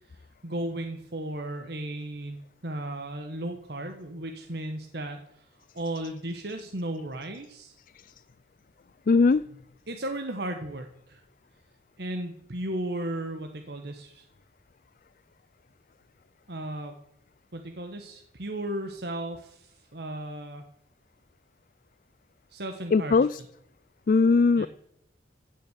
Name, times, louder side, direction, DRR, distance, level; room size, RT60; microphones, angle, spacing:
voice 1, 0.4-5.5 5.7-7.7 9.9-11.2 12.0-14.2 16.5-16.9 17.5-20.6 22.5-23.2 24.6-24.7, right 1 dB, 65° right, 5 dB, 1.4 m, -35 dB
voice 2, 9.1-9.4 22.9-23.4 24.1-24.7, left 4 dB, 50° left, 16 dB, 0.4 m, -20 dB
16.0 x 6.5 x 8.4 m, 0.78 s
head